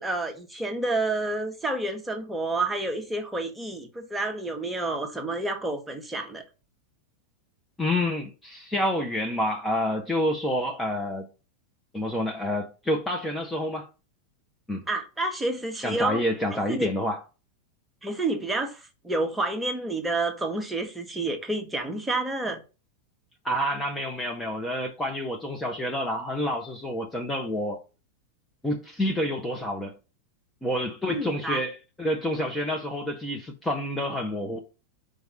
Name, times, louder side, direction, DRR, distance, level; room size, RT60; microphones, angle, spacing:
voice 1, 0.0-6.4 14.9-16.2 16.7-16.9 18.0-22.6 31.1-31.6, right 2 dB, 5° right, 1.3 m, -29 dB
voice 2, 7.8-11.3 11.9-13.9 14.7-14.8 15.8-17.2 23.4-27.8 28.6-29.9 30.6-34.6, left 1 dB, 10° left, 1.0 m, -28 dB
5.2 x 4.7 x 5.6 m
figure-of-eight pair, 90°, 0 cm